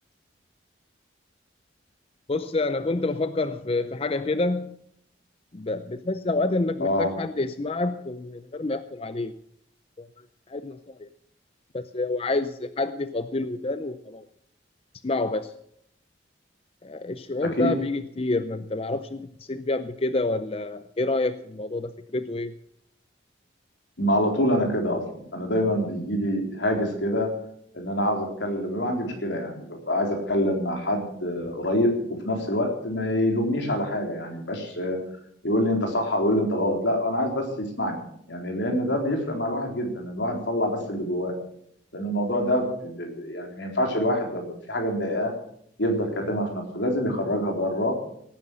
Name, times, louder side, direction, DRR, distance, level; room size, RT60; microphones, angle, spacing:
voice 1, 2.3-4.8 5.5-9.3 10.0-11.1 11.7-14.3 15.0-15.5 16.8-22.5 46.2-46.4, left 2 dB, 30° left, 11 dB, 0.6 m, -28 dB
voice 2, 6.8-7.1 17.6-17.7 24.0-25.0 25.3-27.3 27.7-31.9 32.3-35.0 35.4-38.0 38.3-41.3 41.9-45.3 45.8-47.9, left 1 dB, 75° left, 2 dB, 4.0 m, -26 dB
17.0 x 9.7 x 6.2 m, 0.69 s
head